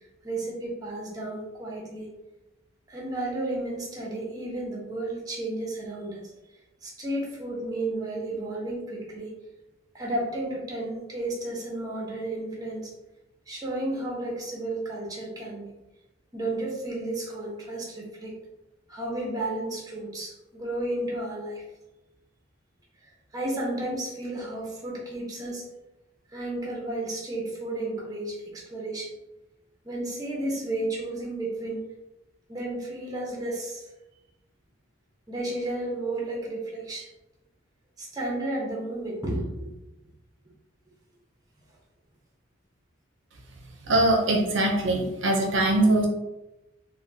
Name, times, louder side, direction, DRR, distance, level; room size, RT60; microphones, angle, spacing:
voice 1, 0.2-2.1 2.9-6.2 6.8-9.3 9.9-12.9 13.5-15.7 16.3-18.3 18.9-21.6 23.3-25.7 26.3-29.1 29.8-31.8 32.5-33.9 35.3-37.1 38.0-39.7, right 1 dB, 20° right, -3 dB, 0.7 m, -32 dB
voice 2, 43.9-46.1, right 1 dB, 65° right, 1 dB, 0.5 m, -22 dB
3.5 x 2.2 x 2.6 m, 0.97 s
head